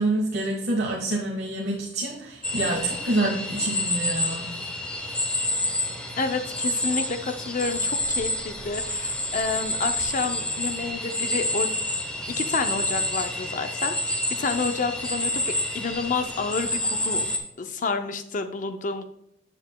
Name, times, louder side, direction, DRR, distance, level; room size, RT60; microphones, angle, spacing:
voice 1, 0.0-4.5, right 2 dB, 60° right, -3 dB, 1.3 m, -27 dB
sound 1, 2.4-17.4, left 1 dB, 5° left, 1.1 m, -28 dB
voice 2, 6.2-11.7 12.4-17.2 17.6-19.0, left 4 dB, 45° left, 8 dB, 0.5 m, -29 dB
8.7 x 7.3 x 2.2 m, 0.81 s
head